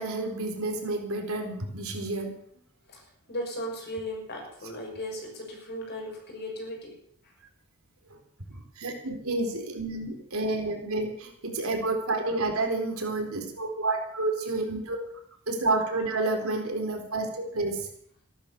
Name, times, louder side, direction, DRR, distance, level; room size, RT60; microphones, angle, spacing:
voice 1, 0.0-2.3 8.5-15.0 15.5-17.9, right 2 dB, 75° right, 2 dB, 4.1 m, -30 dB
voice 2, 3.3-6.9, equal, 50° left, 0 dB, 6.5 m, -36 dB
15.5 x 12.5 x 6.8 m, 0.64 s
head